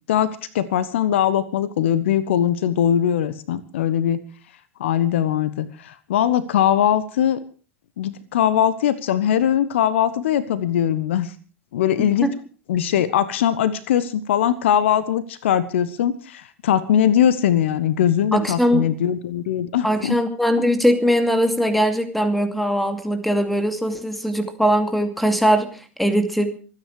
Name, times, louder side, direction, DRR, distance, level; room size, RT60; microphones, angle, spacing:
voice 1, 0.1-4.2 4.8-7.4 8.0-11.3 11.7-12.3 12.7-20.2, left 10 dB, 65° left, 16 dB, 1.2 m, -21 dB
voice 2, 18.3-18.9 19.8-26.6, equal, ahead, 8 dB, 2.4 m, -20 dB
25.5 x 9.8 x 4.8 m, 0.39 s
figure-of-eight pair, 80°, 7 cm